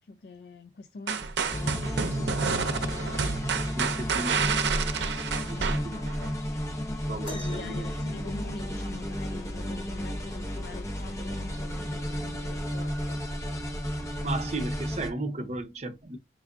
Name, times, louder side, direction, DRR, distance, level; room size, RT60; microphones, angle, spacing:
voice 1, 0.1-3.5 5.5-5.8 7.3-13.2, left 3 dB, 65° left, 0.4 m, -44 dB
sound 1, 1.1-6.3, right 5 dB, 80° right, 0.6 m, -29 dB
sound 2, 1.5-15.1, equal, 15° left, 0.7 m, -33 dB
voice 2, 3.8-4.6 5.5-6.1 7.1-8.4 14.2-16.2, right 2 dB, 35° right, 0.6 m, -35 dB
sound 3, 7.2-9.1 10.8-10.9 11.7-11.9 12.8-12.9, left 2 dB, 80° left, 2.7 m, -45 dB
4.5 x 2.5 x 3.5 m
head